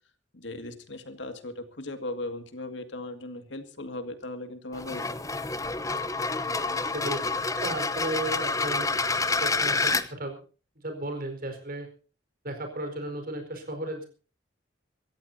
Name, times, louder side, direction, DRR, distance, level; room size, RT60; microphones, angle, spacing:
voice 1, 0.3-5.2, left 2 dB, 70° left, 8 dB, 2.2 m, -38 dB
sound 1, 4.7-10.0, left 3 dB, 20° left, 0.9 m, -28 dB
voice 2, 6.9-7.2 7.6-8.9 9.4-10.4 10.8-11.9 12.4-14.1, right 1 dB, 50° right, 6 dB, 4.7 m, -34 dB
26.0 x 14.5 x 2.8 m, 0.37 s
head